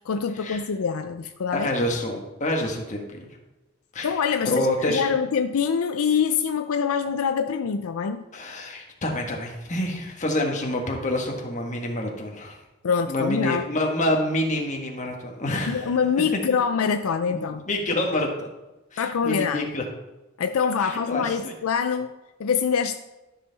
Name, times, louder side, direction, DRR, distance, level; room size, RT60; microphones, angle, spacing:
voice 1, 0.0-1.7 4.0-8.2 12.8-13.6 15.7-17.6 19.0-19.7 20.4-22.1 22.4-23.0, left 6 dB, 75° left, 8 dB, 0.4 m, -25 dB
voice 2, 1.5-3.4 3.9-4.2 4.4-5.1 8.3-12.6 13.1-15.9 17.3-18.5 18.9-19.8 20.8-21.5, left 1 dB, 35° left, 1 dB, 1.4 m, -27 dB
12.5 x 5.6 x 4.0 m, 1.1 s
head